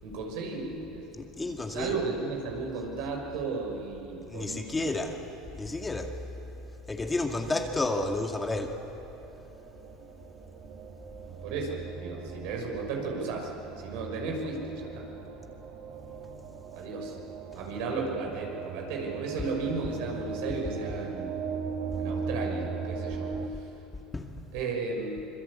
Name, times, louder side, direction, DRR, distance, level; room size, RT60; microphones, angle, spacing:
voice 1, 0.0-1.1 1.7-5.2 7.4-7.5 11.4-13.5 13.8-15.0 16.7-17.1 17.5-21.3 22.0-23.7 24.5-25.2, right 4 dB, 70° right, 1 dB, 6.0 m, -34 dB
voice 2, 1.1-2.0 4.3-5.2 5.5-6.1 6.9-8.8 17.5-17.7 24.1-24.3, left 2 dB, 15° left, 3 dB, 2.2 m, -31 dB
sound 1, 7.5-23.5, right 5 dB, 55° right, 2.2 m, -39 dB
26.0 x 23.0 x 8.5 m, 3.0 s
supercardioid pair, 100°, 0 cm